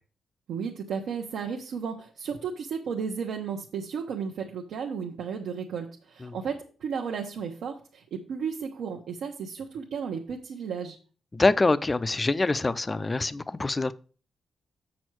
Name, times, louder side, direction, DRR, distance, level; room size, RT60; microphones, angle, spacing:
voice 1, 0.5-11.0, right 6 dB, 75° right, 0.9 m, -34 dB
voice 2, 11.3-13.9, left 3 dB, 20° left, 0.4 m, -25 dB
7.3 x 6.2 x 4.6 m
wide cardioid pair, 160°, 0 cm